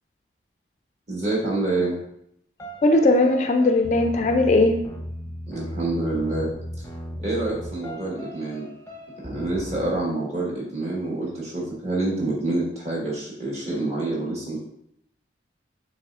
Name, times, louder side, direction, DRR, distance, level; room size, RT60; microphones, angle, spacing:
voice 1, 1.1-2.0 5.5-6.5 7.2-8.7 9.2-14.6, right 2 dB, 35° right, -4 dB, 1.4 m, -27 dB
sound 1, 2.6-9.9, equal, 10° left, 0.7 m, -37 dB
voice 2, 2.8-4.8, left 2 dB, 40° left, 5 dB, 0.3 m, -18 dB
6.7 x 3.1 x 2.4 m, 0.74 s
head